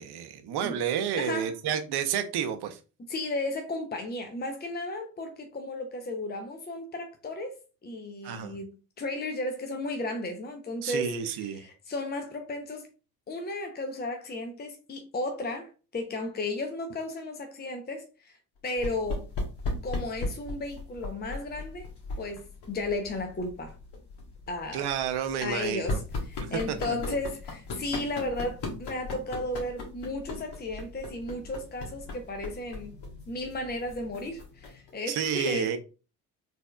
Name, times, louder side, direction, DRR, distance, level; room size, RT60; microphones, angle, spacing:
voice 1, 0.0-2.8 8.2-8.6 10.8-11.6 24.7-26.0 26.4-27.2 35.1-35.8, right 8 dB, 55° right, 0.8 m, -30 dB
voice 2, 1.2-1.5 3.0-7.6 7.8-12.9 13.3-18.4 18.6-19.3 19.8-21.9 22.2-23.7 24.5-24.9 25.4-32.9 33.3-35.7, left 2 dB, 20° left, 0.8 m, -34 dB
sound 1, 18.8-34.9, left 2 dB, 55° left, 1.4 m, -38 dB
4.1 x 3.4 x 2.3 m
figure-of-eight pair, 45°, 49 cm